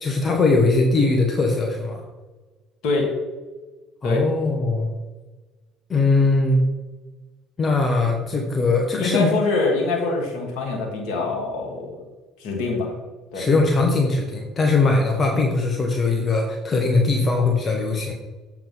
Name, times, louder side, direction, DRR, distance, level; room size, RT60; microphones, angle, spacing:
voice 1, 0.0-2.0 4.0-4.9 5.9-6.6 7.6-9.3 13.3-18.1, left 3 dB, 30° left, 2 dB, 1.3 m, -20 dB
voice 2, 2.8-3.1 4.0-4.2 9.0-12.0 12.4-12.9 13.3-13.5, left 3 dB, 60° left, 0 dB, 2.4 m, -24 dB
7.5 x 4.8 x 5.7 m, 1.3 s
hypercardioid pair, 60°, 0 cm